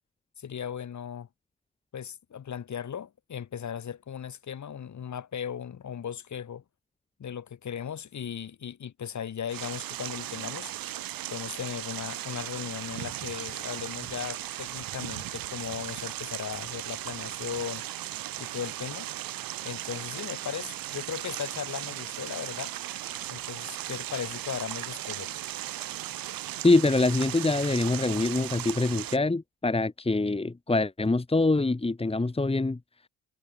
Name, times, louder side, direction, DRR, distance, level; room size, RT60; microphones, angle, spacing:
voice 1, 0.4-1.3 1.9-6.6 7.2-10.7 11.3-18.0 18.4-19.1 19.6-22.7 23.3-25.5, left 8 dB, 45° left, 7.1 m, -37 dB
sound 1, 9.5-29.2, right 13 dB, 60° right, 6.4 m, -37 dB
voice 2, 26.6-32.8, left 2 dB, 15° left, 2.7 m, -24 dB
hypercardioid pair, 50°, 38 cm